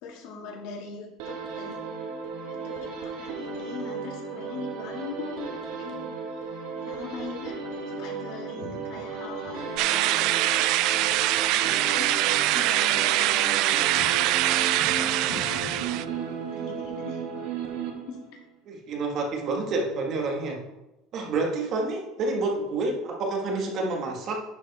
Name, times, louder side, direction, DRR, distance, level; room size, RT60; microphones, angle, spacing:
voice 1, 0.0-1.8 2.5-6.1 6.5-7.6 7.9-12.2 12.5-14.1 14.4-15.8 16.5-17.2 18.1-18.4, left 4 dB, 65° left, 0 dB, 2.0 m, -41 dB
sound 1, 1.2-18.4, right 5 dB, 80° right, 1.6 m, -35 dB
sound 2, 9.8-16.0, right 15 dB, 60° right, 0.3 m, -23 dB
voice 2, 18.7-20.6 21.1-24.4, right 3 dB, 45° right, 2 dB, 1.5 m, -28 dB
11.0 x 4.7 x 4.1 m, 0.99 s
cardioid pair, 145°, 0 cm